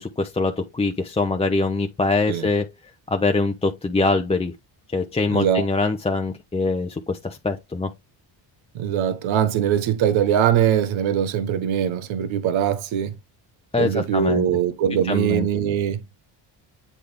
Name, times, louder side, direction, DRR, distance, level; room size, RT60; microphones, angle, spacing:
voice 1, 0.0-2.7 3.1-4.5 4.9-7.9 13.7-14.4 15.1-15.5, left 3 dB, 15° left, 0.6 m, -23 dB
voice 2, 5.3-5.6 8.7-13.2 13.8-16.0, right 9 dB, 80° right, 1.1 m, -22 dB
8.5 x 3.7 x 3.3 m
cardioid pair, 105°, 47 cm